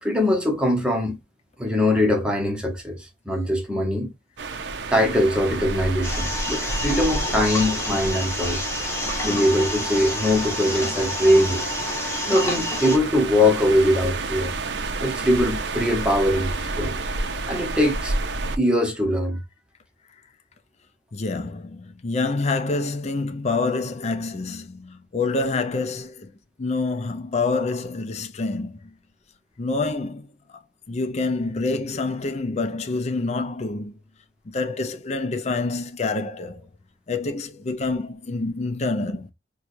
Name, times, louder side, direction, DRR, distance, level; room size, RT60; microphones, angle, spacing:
voice 1, 0.0-1.2 1.6-4.1 4.9-8.7 9.2-11.6 12.3-14.5 15.0-17.0 17.5-18.2 18.6-19.4, left 1 dB, 5° right, 0.9 m, -22 dB
sound 1, 4.4-18.6, right 3 dB, 75° right, 0.6 m, -30 dB
sound 2, 6.0-13.0, left 2 dB, 15° left, 1.1 m, -29 dB
voice 2, 21.1-26.3 26.6-28.9 29.6-30.3 30.9-34.0 34.5-36.7 37.1-39.3, left 3 dB, 40° left, 0.5 m, -27 dB
4.5 x 2.3 x 2.6 m
head